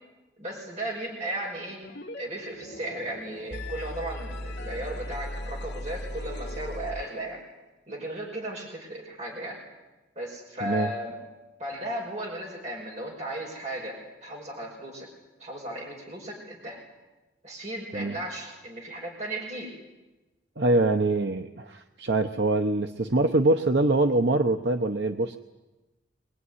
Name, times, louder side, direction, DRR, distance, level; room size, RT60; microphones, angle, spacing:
voice 1, 0.4-1.8 2.2-7.4 7.9-9.6 10.2-11.1 11.6-15.1 15.4-16.8 17.4-19.7, right 1 dB, 40° right, -1 dB, 5.5 m, -35 dB
sound 1, 1.8-2.2 2.5-7.4, left 1 dB, 70° left, 2.0 m, -37 dB
voice 2, 20.6-25.4, right 2 dB, 70° right, 5 dB, 0.9 m, -24 dB
24.5 x 20.0 x 9.8 m, 1.1 s
head